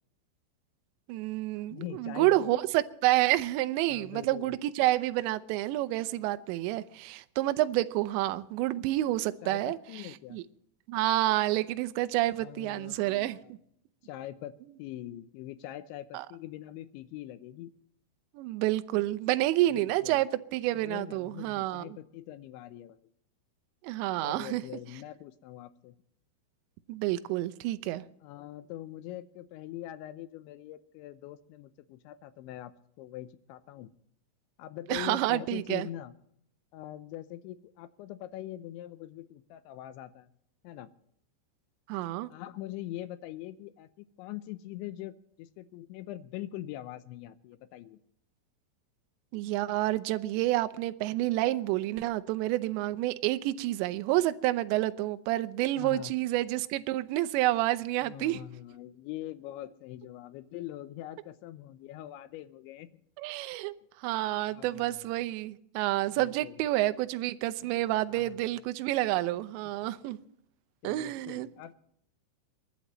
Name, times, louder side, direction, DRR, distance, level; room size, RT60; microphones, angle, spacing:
voice 1, 1.1-9.8 10.3-10.4 10.9-13.4 16.1-16.3 18.4-21.8 23.8-24.6 26.9-28.0 34.9-35.9 41.9-42.3 49.3-58.4 63.2-63.7 64.0-70.2 70.8-71.5, right 16 dB, 80° right, 2.7 m, -29 dB
voice 2, 1.7-2.7 3.9-4.6 9.4-10.4 12.3-13.5 14.0-14.5 14.8-17.7 19.7-20.2 20.7-23.0 24.2-26.0 28.2-32.7 33.0-33.9 34.6-36.1 36.7-40.3 40.6-40.9 42.3-48.0 55.8-56.1 58.0-62.9 64.5-65.1 66.2-66.6 68.1-68.4 70.1-70.3 70.8-71.7, left 13 dB, 80° left, 2.8 m, -43 dB
29.0 x 11.5 x 3.1 m
omnidirectional pair, 5.7 m